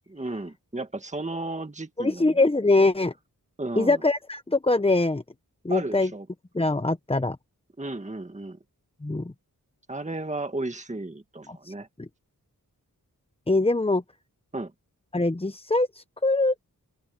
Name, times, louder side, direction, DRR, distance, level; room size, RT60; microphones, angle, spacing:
voice 1, 0.1-2.4 3.6-4.0 5.7-6.3 7.8-8.6 9.9-11.9 14.5-14.7, right 2 dB, 20° right, 1.7 m, -34 dB
voice 2, 2.0-3.1 3.8-5.2 5.6-6.1 6.5-7.4 9.0-9.3 11.6-11.7 12.0-12.1 13.5-14.0 15.1-16.5, left 2 dB, 15° left, 0.8 m, -23 dB
open air
cardioid pair, 50°, 37 cm